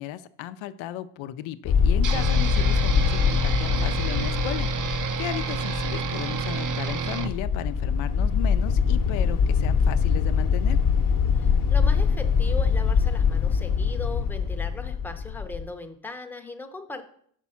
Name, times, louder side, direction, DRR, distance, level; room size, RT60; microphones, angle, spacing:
voice 1, 0.0-10.8, left 12 dB, 90° left, 12 dB, 0.6 m, -35 dB
sound 1, 1.6-15.7, left 6 dB, 45° left, 0.9 m, -23 dB
sound 2, 2.0-7.3, right 5 dB, 45° right, 0.7 m, -29 dB
voice 2, 11.4-17.0, left 3 dB, 5° left, 4 dB, 0.7 m, -38 dB
6.0 x 5.3 x 5.6 m, 0.63 s
cardioid pair, 110°, 45 cm